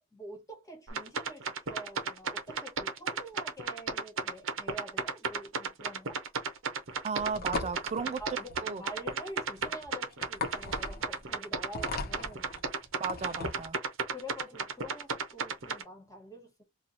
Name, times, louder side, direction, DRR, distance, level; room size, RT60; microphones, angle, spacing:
voice 1, 0.1-6.2 7.9-12.5 14.1-16.6, equal, 15° left, 1.4 m, -47 dB
sound 1, 0.9-15.8, right 5 dB, 75° right, 0.8 m, -34 dB
sound 2, 6.9-13.7, left 4 dB, 50° left, 0.8 m, -39 dB
voice 2, 7.0-8.2 8.6-8.8 13.0-13.8, right 5 dB, 35° right, 0.3 m, -34 dB
3.0 x 2.3 x 3.9 m
head